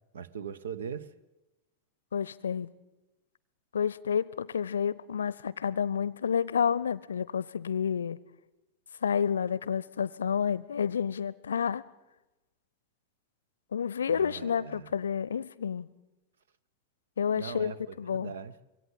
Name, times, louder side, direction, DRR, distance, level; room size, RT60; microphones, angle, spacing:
voice 1, 0.1-1.1 14.1-14.9 17.3-18.6, right 7 dB, 65° right, 0.8 m, -40 dB
voice 2, 2.1-2.7 3.7-8.2 9.0-11.8 13.7-15.9 17.2-18.3, left 7 dB, 70° left, 0.6 m, -30 dB
23.0 x 17.0 x 8.2 m
figure-of-eight pair, 90°, 0 cm